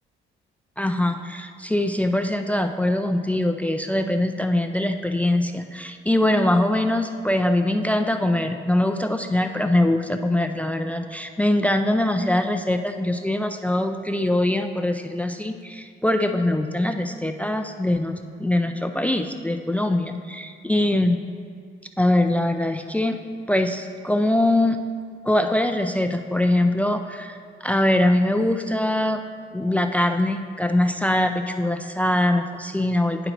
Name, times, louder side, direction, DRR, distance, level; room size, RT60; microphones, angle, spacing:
voice 1, 0.8-21.2 22.0-23.2 23.5-24.8 25.2-29.2 29.5-33.3, left 1 dB, 5° left, 7 dB, 0.3 m, -22 dB
10.0 x 4.5 x 3.9 m, 2.1 s
cardioid pair, 90°, 20 cm